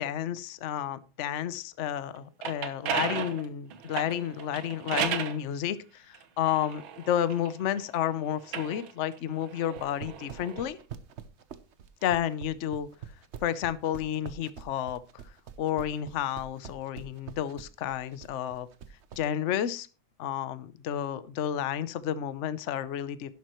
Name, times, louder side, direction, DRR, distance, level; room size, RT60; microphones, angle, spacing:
voice 1, 0.0-10.8 12.0-12.9 13.4-15.0 15.6-18.7 19.2-19.9 20.2-23.3, left 10 dB, 70° left, 0.6 m, -31 dB
sound 1, 2.2-5.4 6.1-7.8 8.4-10.7, right 8 dB, 80° right, 1.9 m, -35 dB
sound 2, 9.6-19.2, right 8 dB, 60° right, 0.7 m, -44 dB
11.0 x 11.0 x 3.0 m
omnidirectional pair, 2.2 m